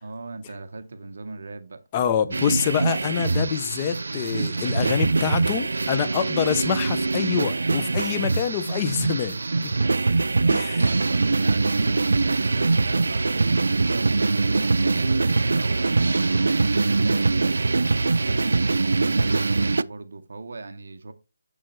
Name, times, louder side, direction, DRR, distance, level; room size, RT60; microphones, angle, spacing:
voice 1, 0.0-1.8 10.1-21.1, right 3 dB, 55° right, 0.9 m, -38 dB
voice 2, 1.9-9.7 10.5-10.8, left 9 dB, 15° left, 0.4 m, -26 dB
sound 1, 2.3-19.8, right 3 dB, 85° right, 0.4 m, -23 dB
7.4 x 6.5 x 3.1 m
hypercardioid pair, 175°, 0 cm